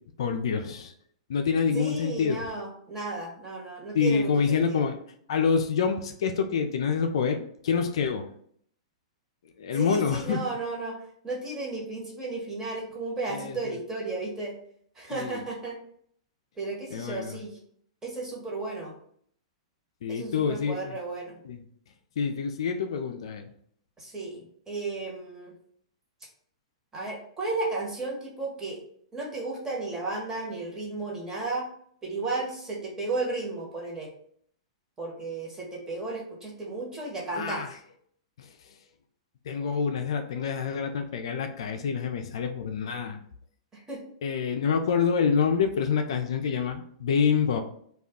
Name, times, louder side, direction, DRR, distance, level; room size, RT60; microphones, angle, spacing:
voice 1, 0.2-0.9 1.3-2.4 3.9-5.0 5.3-8.3 9.6-10.4 13.3-13.8 15.1-15.4 16.9-17.4 20.0-21.0 21.4-21.6 22.2-23.4 37.3-37.7 38.4-38.5 39.5-43.2 44.2-47.6, left 6 dB, 65° left, 6 dB, 0.4 m, -27 dB
voice 2, 1.7-4.8 9.7-11.0 11.2-14.5 14.9-15.8 16.6-17.6 18.0-18.9 20.1-21.4 24.0-25.5 26.9-28.8 29.1-31.7 32.0-34.1 35.0-37.8 43.7-44.0, right 3 dB, 15° right, -2 dB, 1.1 m, -34 dB
2.3 x 2.2 x 3.6 m, 0.63 s
hypercardioid pair, 110°, 3 cm